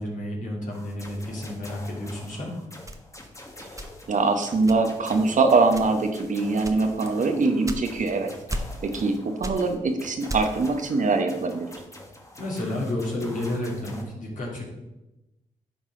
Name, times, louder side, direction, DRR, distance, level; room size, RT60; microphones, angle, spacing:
voice 1, 0.0-2.5 12.4-14.7, left 1 dB, 55° left, -3 dB, 3.0 m, -31 dB
sound 1, 0.7-14.0, left 1 dB, 20° left, 1.6 m, -45 dB
sound 2, 2.9-4.2 4.7-5.1 5.7-6.2 6.6-8.2 8.5-9.1 9.4-10.7, right 1 dB, 20° right, 0.9 m, -35 dB
voice 2, 4.1-8.3 8.8-11.7, right 3 dB, 55° right, 6 dB, 1.0 m, -23 dB
11.0 x 4.0 x 3.8 m, 0.98 s
supercardioid pair, 45°, 16 cm